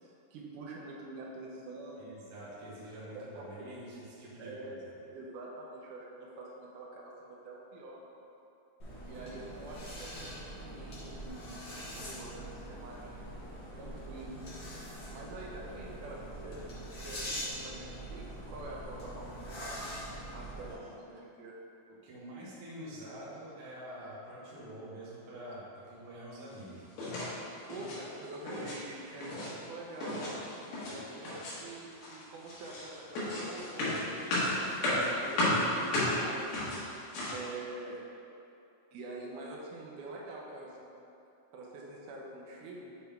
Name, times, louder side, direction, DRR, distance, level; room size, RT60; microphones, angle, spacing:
voice 1, 0.0-2.1 3.1-3.5 4.4-8.1 9.0-13.1 13.7-14.4 15.1-16.7 17.0-19.9 20.3-20.7 21.0-21.5 27.6-30.2 30.8-34.5 34.8-38.0 38.9-40.9 41.5-42.9, right 2 dB, 80° right, -3 dB, 2.0 m, -46 dB
voice 2, 2.0-4.8 20.7-20.9 22.0-26.9, right 1 dB, 55° right, -8 dB, 1.5 m, -46 dB
sound 1, 8.8-20.7, equal, 55° left, 1.3 m, -43 dB
sound 2, 27.0-27.3 27.6-28.0 28.3-28.8 29.0-29.5 30.0-31.0 31.2-31.7 32.0-37.5, left 1 dB, 90° left, 3.4 m, -33 dB
7.8 x 4.2 x 3.5 m, 2.7 s
omnidirectional pair, 4.3 m